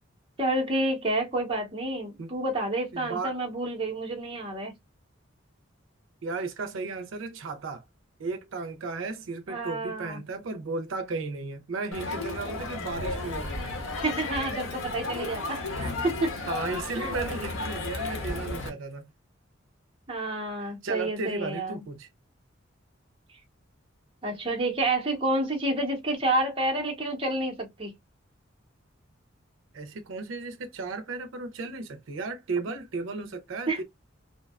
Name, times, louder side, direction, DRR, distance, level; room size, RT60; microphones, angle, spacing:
voice 1, 0.4-4.7 9.5-10.2 14.0-16.3 17.0-17.1 20.1-21.8 24.2-27.9 33.7-33.8, right 2 dB, 25° right, 0.8 m, -29 dB
voice 2, 2.9-3.4 6.2-7.8 8.2-13.8 16.5-19.1 20.6-22.1 29.7-33.8, right 3 dB, 80° right, 0.5 m, -35 dB
Crowd, 11.9-18.7, left 2 dB, 90° left, 0.8 m, -33 dB
2.7 x 2.2 x 2.2 m
head